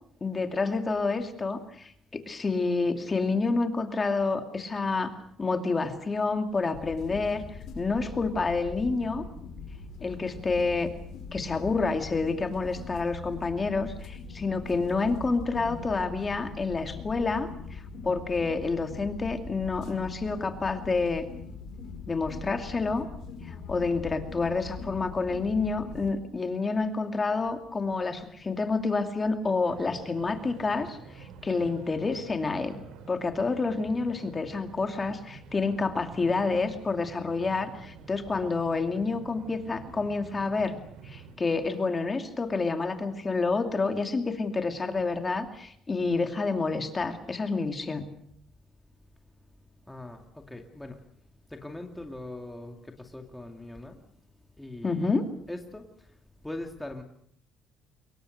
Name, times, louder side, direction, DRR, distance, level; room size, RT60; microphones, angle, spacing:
voice 1, 0.2-5.1 5.4-7.4 7.7-9.3 10.0-10.9 11.3-21.2 22.1-23.1 23.5-32.7 33.1-40.8 41.0-48.1 54.8-55.3, left 3 dB, 25° left, 6 dB, 2.5 m, -28 dB
sound 1, 6.7-26.1, left 4 dB, 60° left, 4.8 m, -41 dB
sound 2, 29.7-41.3, right 6 dB, 80° right, 3.9 m, -48 dB
voice 2, 36.0-36.4 49.9-51.0 51.5-54.0 54.6-55.1 55.5-56.2 56.4-57.0, left 1 dB, 5° left, 3 dB, 2.3 m, -41 dB
25.0 x 22.5 x 6.6 m, 0.67 s
cardioid pair, 115°, 0 cm